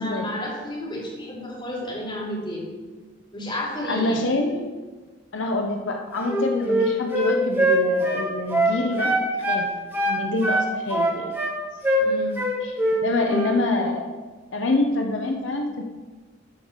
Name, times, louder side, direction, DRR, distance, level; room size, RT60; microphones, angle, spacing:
voice 1, 0.0-2.6 3.3-4.2 12.0-12.4, left 1 dB, 25° left, -6 dB, 3.7 m, -31 dB
voice 2, 3.9-4.7 5.3-9.7 10.1-11.3 12.6-12.7 13.0-14.1 14.5-15.8, left 2 dB, 85° left, 3 dB, 0.9 m, -26 dB
Wind instrument woodwind instrument, 6.2-9.6 9.9-11.5 11.8-12.1 12.4-13.0 13.3-13.5, right 1 dB, 15° right, 2.6 m, -22 dB
13.0 x 5.1 x 6.4 m, 1.4 s
head